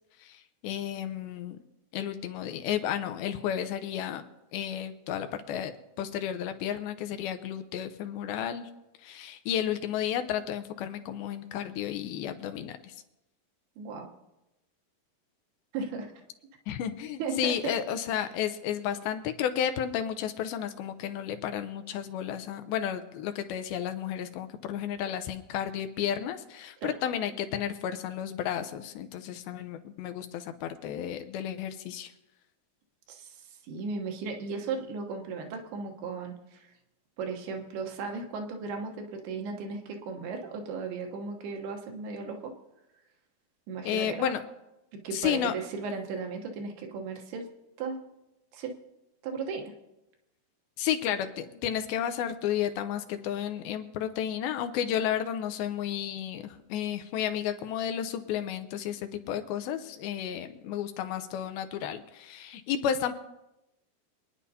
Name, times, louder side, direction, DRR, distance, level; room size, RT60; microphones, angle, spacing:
voice 1, 0.2-1.6 1.9-4.2 4.5-5.7 6.0-8.7 9.0-13.0 16.7-32.1 43.9-44.4 45.1-45.6 50.8-63.1, left 9 dB, 80° left, 8 dB, 2.4 m, -32 dB
voice 2, 13.8-14.1 15.7-16.1 17.2-17.5 26.8-26.9 33.1-33.4 33.7-36.7 37.2-42.5 43.7-44.3 44.9-47.5 47.8-48.0 48.5-48.7 49.2-49.7, right 4 dB, 80° right, 3 dB, 3.0 m, -36 dB
25.5 x 9.7 x 2.8 m, 0.93 s
omnidirectional pair, 4.5 m